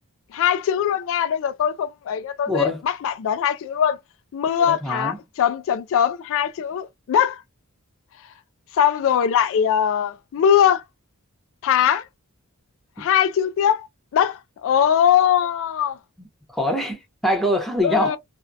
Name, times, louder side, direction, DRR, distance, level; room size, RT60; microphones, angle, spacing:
voice 1, 0.3-4.0 4.3-7.4 8.7-10.8 11.6-12.0 13.0-13.9 14.1-16.0 17.8-18.2, left 9 dB, 60° left, 0.3 m, -21 dB
voice 2, 2.5-2.8 4.6-5.2 16.2-18.2, left 1 dB, ahead, 0.8 m, -24 dB
2.6 x 2.2 x 2.2 m
head